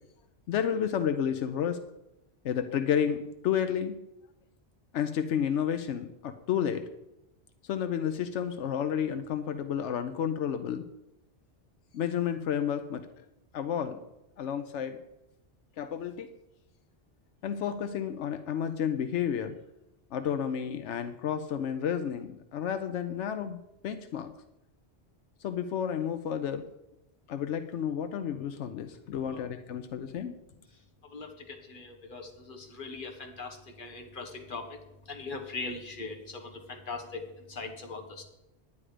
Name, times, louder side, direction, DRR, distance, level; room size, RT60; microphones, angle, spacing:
voice 1, 0.5-1.8 2.4-4.0 4.9-6.8 7.6-10.8 11.9-13.0 13.5-14.0 14.4-15.0 15.8-16.3 17.4-19.6 20.1-23.6 23.8-24.3 25.4-26.6 27.3-30.3, left 8 dB, 85° left, 8 dB, 1.0 m, -31 dB
voice 2, 31.0-38.2, left 3 dB, 50° left, 3 dB, 1.5 m, -41 dB
9.9 x 9.9 x 4.9 m, 0.91 s
omnidirectional pair, 1.2 m